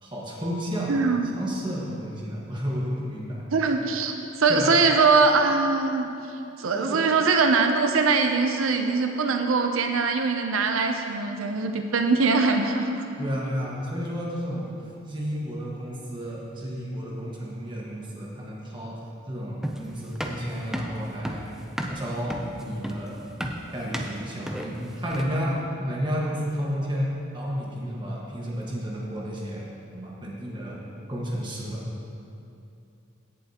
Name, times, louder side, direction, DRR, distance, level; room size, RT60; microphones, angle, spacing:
voice 1, 0.0-3.4 4.5-4.7 6.7-7.0 13.2-14.7 15.1-19.0 19.3-21.4 21.9-23.2 23.7-29.6 29.9-30.8 31.1-31.8, equal, 25° right, -4 dB, 1.5 m, -31 dB
voice 2, 0.9-1.4 3.5-6.1 6.6-13.0, right 4 dB, 90° right, 5 dB, 0.6 m, -22 dB
sound 1, 19.6-25.5, equal, 5° right, 0.5 m, -33 dB
16.5 x 7.3 x 2.9 m, 2.7 s
head